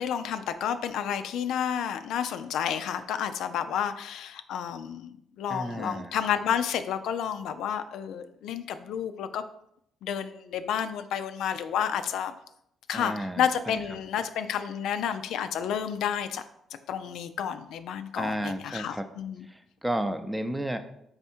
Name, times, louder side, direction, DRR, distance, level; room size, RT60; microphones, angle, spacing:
voice 1, 0.0-9.4 10.0-12.3 12.9-16.4 16.9-19.5, left 8 dB, 80° left, 10 dB, 0.3 m, -30 dB
voice 2, 5.5-6.2 12.9-13.8 18.2-19.0 19.5-20.8, right 1 dB, 5° right, 8 dB, 0.5 m, -32 dB
3.5 x 3.5 x 4.3 m, 0.75 s
cardioid pair, 90°, 0 cm